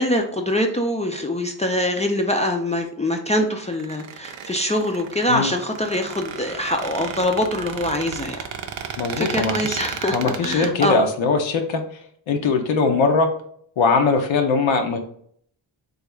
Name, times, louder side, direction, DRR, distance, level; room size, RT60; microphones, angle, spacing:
voice 1, 0.0-8.5 9.2-11.1, left 1 dB, 15° left, 3 dB, 0.3 m, -24 dB
Squeak, 3.6-10.9, right 7 dB, 70° right, 0.6 m, -34 dB
voice 2, 9.0-9.8 10.1-11.8 12.3-13.3 13.8-15.0, left 4 dB, 80° left, 4 dB, 0.6 m, -20 dB
3.4 x 2.4 x 3.0 m, 0.64 s
cardioid pair, 65°, 47 cm